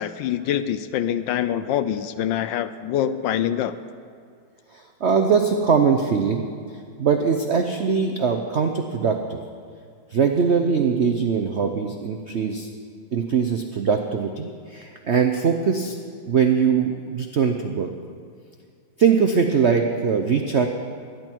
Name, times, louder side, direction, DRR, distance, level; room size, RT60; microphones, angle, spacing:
voice 1, 0.0-3.7, left 10 dB, 75° left, 12 dB, 1.2 m, -25 dB
voice 2, 4.7-6.5 7.0-9.4 10.1-12.7 13.1-16.0 16.2-17.9 19.0-20.7, right 6 dB, 70° right, 4 dB, 0.6 m, -21 dB
22.5 x 10.5 x 4.6 m, 2.2 s
omnidirectional pair, 2.2 m